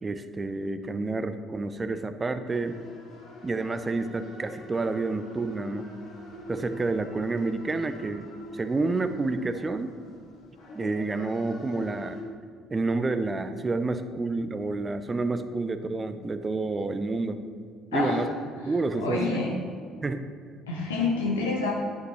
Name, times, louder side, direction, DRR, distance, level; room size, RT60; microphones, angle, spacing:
voice 1, 0.0-2.8 3.4-5.9 6.5-8.3 8.5-9.9 10.7-12.2 12.7-17.4 17.9-18.3 18.6-19.4 20.0-20.2, right 3 dB, 25° right, 10 dB, 0.6 m, -29 dB
sound 1, 2.5-12.2, left 1 dB, 60° left, 1.8 m, -44 dB
voice 2, 17.9-18.3 18.9-19.5 20.7-21.7, left 3 dB, 85° left, -2 dB, 1.2 m, -27 dB
9.8 x 8.2 x 3.2 m, 2.2 s
hypercardioid pair, 55°, 0 cm